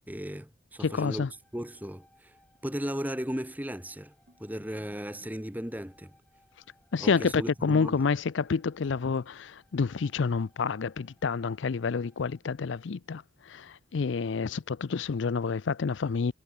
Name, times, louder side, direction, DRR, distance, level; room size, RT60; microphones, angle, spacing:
voice 1, 0.1-1.2 1.5-2.3 2.6-4.1 4.4-6.1 7.0-8.0, equal, 10° right, 1.7 m, -36 dB
voice 2, 0.8-1.3 6.9-16.3, left 5 dB, 70° left, 0.5 m, -29 dB
sound 1, 0.9-12.4, left 1 dB, 5° left, 6.0 m, -67 dB
sound 2, 4.3-5.7 7.0-9.3, equal, 55° right, 5.0 m, -60 dB
head